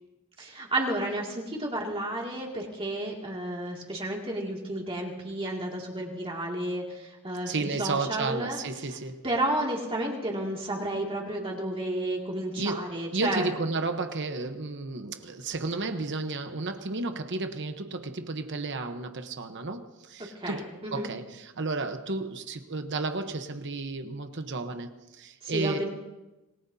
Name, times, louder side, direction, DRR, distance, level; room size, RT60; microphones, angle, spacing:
voice 1, 0.4-8.6 9.2-13.5 20.3-21.1 25.4-25.9, right 1 dB, 25° right, -2 dB, 2.4 m, -32 dB
voice 2, 7.5-9.2 12.6-12.9 13.1-25.8, right 3 dB, 55° right, 7 dB, 1.0 m, -32 dB
26.5 x 19.5 x 2.8 m, 1.1 s
head